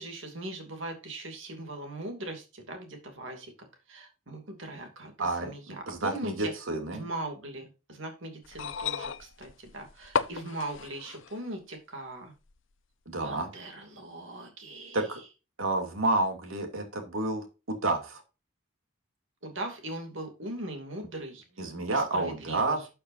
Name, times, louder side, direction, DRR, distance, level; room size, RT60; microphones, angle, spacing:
voice 1, 0.0-6.5 6.9-12.3 13.2-15.1 19.4-21.7 21.9-22.9, right 2 dB, 65° right, 4 dB, 2.6 m, -40 dB
voice 2, 5.2-7.0 13.1-13.5 14.9-15.2 15.6-18.2 21.6-22.8, right 2 dB, 80° right, 4 dB, 2.8 m, -30 dB
sound 1, 8.4-11.4 12.5-12.6, left 6 dB, 65° left, 0.6 m, -34 dB
12.5 x 6.5 x 2.7 m, 0.30 s
head